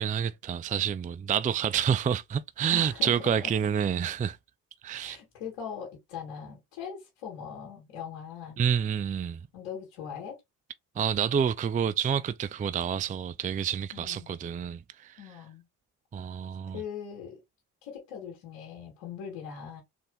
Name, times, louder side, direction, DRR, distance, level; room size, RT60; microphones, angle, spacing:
voice 1, 0.0-4.4 4.8-5.2 8.6-9.5 11.0-15.4 16.1-16.8, right 8 dB, 20° right, 0.4 m, -28 dB
voice 2, 2.7-3.5 5.0-8.6 9.5-10.4 13.9-14.3 15.2-15.6 16.7-17.4 17.8-19.8, left 7 dB, 80° left, 2.1 m, -41 dB
4.0 x 3.4 x 3.8 m
hypercardioid pair, 55°, 43 cm